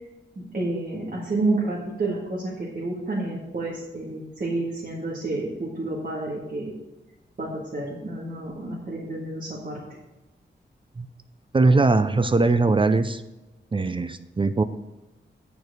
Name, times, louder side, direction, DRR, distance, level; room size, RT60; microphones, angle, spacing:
voice 1, 0.4-6.7 7.4-9.8, right 2 dB, 45° right, -4 dB, 1.8 m, -29 dB
voice 2, 11.5-13.2 13.7-14.6, right 3 dB, 25° right, 11 dB, 0.4 m, -20 dB
10.5 x 4.6 x 6.5 m, 1.0 s
wide cardioid pair, 120°, 20 cm